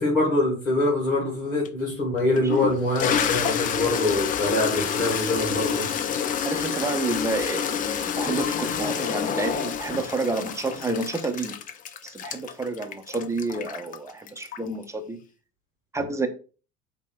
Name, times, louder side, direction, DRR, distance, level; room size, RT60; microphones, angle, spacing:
voice 1, 0.0-5.9, left 2 dB, 80° left, 1.7 m, -24 dB
Toilet flush, 1.6-1.7 2.4-14.8, left 8 dB, 20° left, 0.4 m, -28 dB
voice 2, 6.4-11.6 12.0-15.2 15.9-16.3, right 2 dB, 5° right, 0.7 m, -29 dB
8.2 x 2.8 x 2.3 m
figure-of-eight pair, 70°, 41 cm